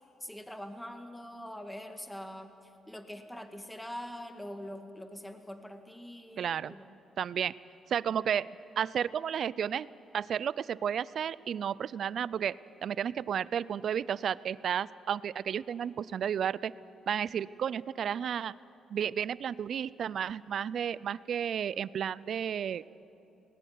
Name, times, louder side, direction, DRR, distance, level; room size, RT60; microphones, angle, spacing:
voice 1, 0.2-2.5 2.9-6.9, equal, 5° left, 6 dB, 1.8 m, -43 dB
voice 2, 6.4-6.8 7.2-7.5 7.9-8.5 8.8-9.9 10.1-16.7 17.1-18.5 18.9-22.8, right 8 dB, 60° right, 20 dB, 0.5 m, -32 dB
19.0 x 19.0 x 9.3 m, 2.8 s
cardioid pair, 90°, 0 cm